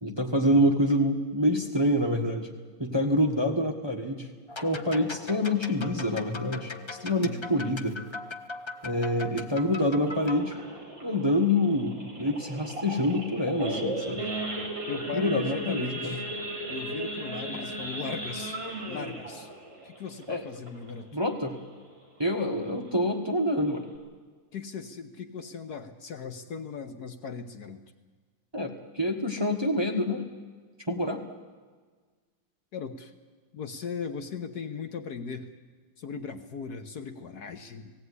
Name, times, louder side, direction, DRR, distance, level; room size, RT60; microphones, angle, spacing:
voice 1, 0.0-2.5 2.8-4.3 4.6-6.7 7.0-8.0 8.8-10.5 11.0-14.3 15.1-16.2 17.5-17.6 20.3-20.4 21.1-21.6 22.2-23.9 28.5-30.2 30.9-31.2, left 1 dB, 15° right, 2 dB, 1.3 m, -26 dB
sound 1, 4.5-10.4, left 3 dB, 35° left, 0.4 m, -40 dB
voice 2, 6.7-7.5 14.9-16.3 16.7-18.6 18.9-19.5 19.8-21.1 24.5-27.8 32.7-33.1 33.5-35.5 36.0-37.9, left 5 dB, 60° left, 8 dB, 1.4 m, -38 dB
Idling / Accelerating revving vroom / Sawing, 10.1-21.1 21.5-21.7 22.0-22.1 22.6-22.8 23.3-23.4 23.6-24.0, right 1 dB, 30° right, 4.2 m, -36 dB
18.5 x 16.5 x 9.7 m, 1.5 s
omnidirectional pair, 2.0 m